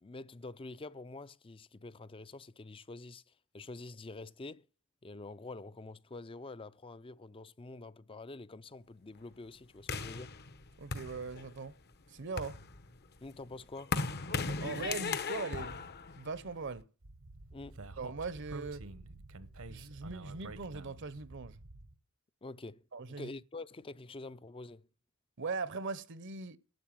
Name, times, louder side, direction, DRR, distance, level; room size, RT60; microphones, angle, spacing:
voice 1, 0.0-3.2 3.5-4.7 5.0-10.3 13.2-14.0 17.5-17.9 22.4-22.8 23.1-24.9, left 2 dB, 25° left, 0.5 m, -47 dB
sound 1, 9.9-11.7 12.2-16.8, left 4 dB, 50° left, 1.0 m, -38 dB
voice 2, 10.8-11.8 12.1-12.6 14.4-15.9 16.2-16.9 18.0-18.8 19.7-21.6 22.9-23.3 25.4-26.6, right 4 dB, 60° right, 0.8 m, -40 dB
Speech, 17.0-21.9, right 2 dB, 80° right, 1.2 m, -49 dB
12.0 x 7.8 x 7.5 m
head